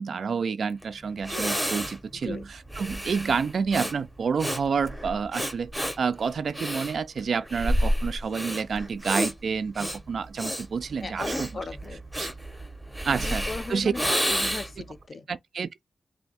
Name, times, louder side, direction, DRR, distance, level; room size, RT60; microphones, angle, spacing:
voice 1, 0.0-11.5 12.2-12.3 13.0-13.9 15.3-15.8, right 5 dB, 65° right, 0.3 m, -29 dB
Breathing, 0.8-0.9 1.2-14.9, equal, ahead, 0.6 m, -30 dB
voice 2, 2.1-2.5 11.0-12.0 13.1-15.3, left 3 dB, 40° left, 0.5 m, -37 dB
3.2 x 2.6 x 4.1 m
wide cardioid pair, 165°, 0 cm